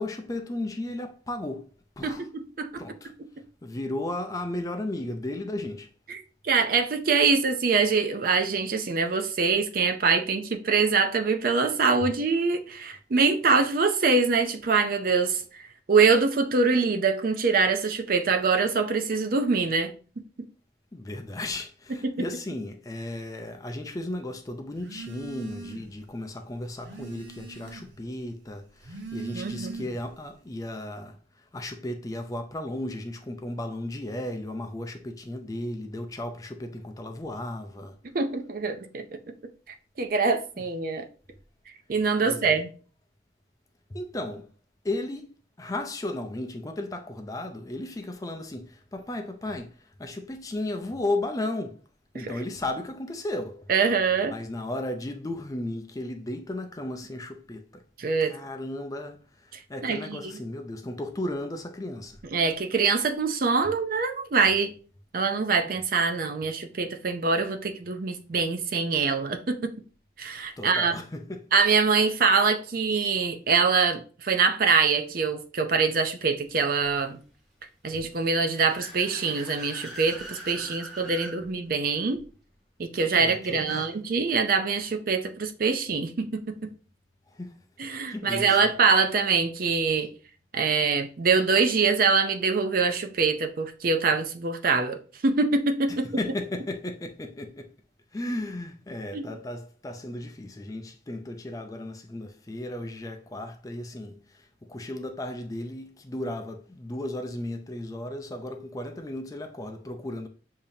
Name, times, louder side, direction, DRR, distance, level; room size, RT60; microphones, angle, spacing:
voice 1, 0.0-1.7 2.0-2.3 2.8-3.1 3.6-5.9 12.0-12.1 20.9-38.0 42.2-42.6 43.9-44.5 44.8-51.8 52.1-53.7 54.2-57.8 58.2-62.2 63.6-63.7 70.6-71.5 83.1-83.9 87.3-87.6 88.1-88.7 95.9-97.7 98.1-110.3, left 1 dB, 20° left, 0.4 m, -35 dB
voice 2, 6.1-15.6 15.9-20.2 22.0-22.1 29.3-29.7 38.1-39.0 40.0-41.1 41.9-42.7 53.7-54.3 58.0-58.3 59.5-60.2 62.3-64.7 65.1-69.7 70.2-71.0 71.5-77.2 77.8-82.2 82.8-86.7 87.8-90.1 90.5-96.1 99.1-99.2, right 4 dB, 50° right, 0.5 m, -24 dB
Telephone, 24.8-26.0 26.4-28.1 28.7-30.2, right 3 dB, 75° right, 1.0 m, -40 dB
Car / Accelerating revving vroom, 78.1-81.4, right 1 dB, ahead, 1.3 m, -42 dB
6.7 x 2.8 x 2.7 m
head